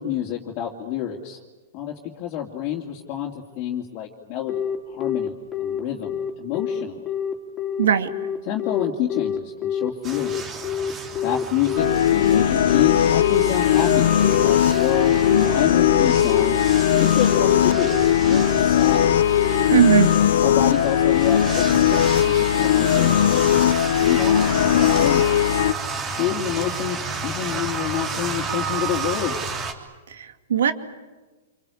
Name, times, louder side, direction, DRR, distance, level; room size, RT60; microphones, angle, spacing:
voice 1, 0.0-1.4 1.7-7.0 8.4-10.6 11.2-14.1 14.4-16.6 17.0-19.1 20.4-21.9 22.2-25.5 26.1-29.5, left 10 dB, 40° left, -1 dB, 2.8 m, -28 dB
Telephone, 4.5-20.7, left 8 dB, 20° left, 3.8 m, -27 dB
voice 2, 7.8-8.1 19.7-20.1 30.2-30.7, right 9 dB, 85° right, 8 dB, 2.5 m, -18 dB
sound 1, 10.0-29.7, right 4 dB, 20° right, 3.4 m, -32 dB
sound 2, 11.8-25.7, left 10 dB, 75° left, 0.8 m, -19 dB
28.0 x 24.5 x 8.6 m, 1.3 s
hypercardioid pair, 145°, 0 cm